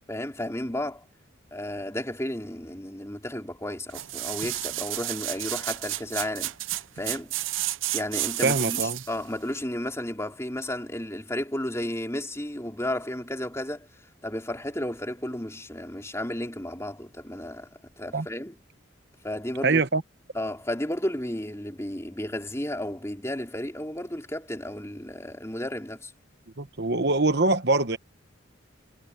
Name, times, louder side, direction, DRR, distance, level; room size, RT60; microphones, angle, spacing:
voice 1, 0.1-1.0 1.5-6.5 7.0-7.3 7.9-13.9 14.2-17.7 18.0-18.5 19.2-19.8 20.3-26.1, left 1 dB, 15° left, 3.6 m, -33 dB
sound 1, 3.9-9.2 9.6-9.7, right 15 dB, 75° right, 0.6 m, -31 dB
voice 2, 8.4-9.0 18.1-18.3 19.6-20.0 26.6-28.0, right 3 dB, 50° right, 1.1 m, -23 dB
head